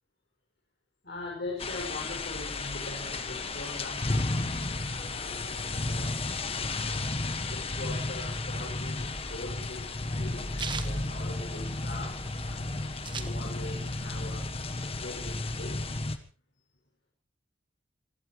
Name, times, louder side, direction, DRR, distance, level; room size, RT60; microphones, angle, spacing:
voice 1, 1.0-6.2 6.5-7.1 7.5-14.5 14.9-16.1, left 2 dB, 60° left, -2 dB, 6.5 m, -42 dB
sound 1, 1.6-16.2, left 2 dB, 30° left, 1.6 m, -33 dB
sound 2, 8.9-12.0 12.3-12.4 12.6-13.9 14.3-15.4, right 5 dB, 25° right, 1.4 m, -40 dB
25.0 x 17.0 x 3.2 m, 0.37 s
head